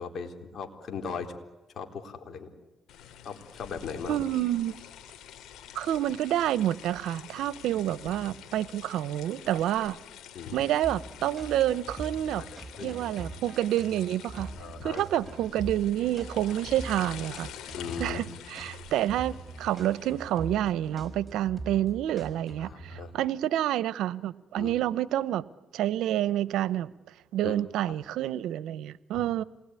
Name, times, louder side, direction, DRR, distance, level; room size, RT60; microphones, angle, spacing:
voice 1, 0.0-1.4 1.8-2.5 3.2-4.3 10.3-10.6 12.3-12.9 14.6-15.0 17.7-18.2 22.6-23.1 24.6-24.8 27.4-27.6, left 6 dB, 60° left, 3.9 m, -38 dB
sound 1, 2.9-20.6, left 9 dB, 85° left, 2.7 m, -47 dB
voice 2, 4.1-4.8 5.7-10.0 10.5-12.4 12.8-14.5 14.8-17.5 18.0-25.4 25.7-26.9 27.3-29.4, right 12 dB, 85° right, 0.8 m, -28 dB
sound 2, 10.8-23.3, right 2 dB, 10° right, 5.1 m, -43 dB
27.5 x 20.5 x 9.7 m
cardioid pair, 90°, 0 cm